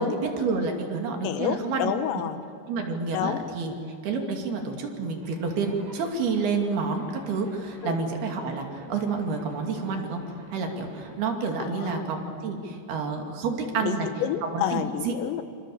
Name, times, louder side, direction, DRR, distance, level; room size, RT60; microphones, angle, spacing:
voice 1, 0.0-1.9 2.7-3.7 4.0-10.2 10.5-14.1 14.4-15.1, right 4 dB, 65° right, 3 dB, 4.2 m, -29 dB
voice 2, 1.2-2.4 3.1-3.7 7.8-8.0 11.6-12.0 13.8-15.4, left 10 dB, 80° left, 9 dB, 3.4 m, -30 dB
Zipper (clothing), 5.2-11.1, right 1 dB, 85° right, 9.4 m, -48 dB
27.5 x 27.5 x 7.1 m, 2.6 s
omnidirectional pair, 5.1 m